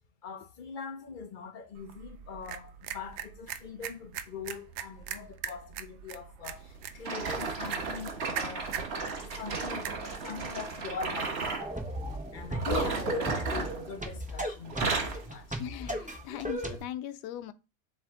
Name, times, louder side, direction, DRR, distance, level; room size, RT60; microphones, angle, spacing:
voice 1, 0.2-8.7 9.2-11.6 12.3-15.6, left 5 dB, 40° left, 0.7 m, -43 dB
sound 1, 1.7-11.3, right 9 dB, 80° right, 1.2 m, -42 dB
sound 2, 7.0-11.7 12.5-14.3 14.6-15.3 15.9-16.1 16.7-16.8, right 4 dB, 45° right, 1.2 m, -34 dB
sound 3, 11.6-16.8, right 1 dB, 10° right, 0.6 m, -35 dB
voice 2, 12.7-13.1 15.6-17.5, left 12 dB, 85° left, 1.2 m, -38 dB
7.4 x 3.5 x 3.6 m
omnidirectional pair, 1.7 m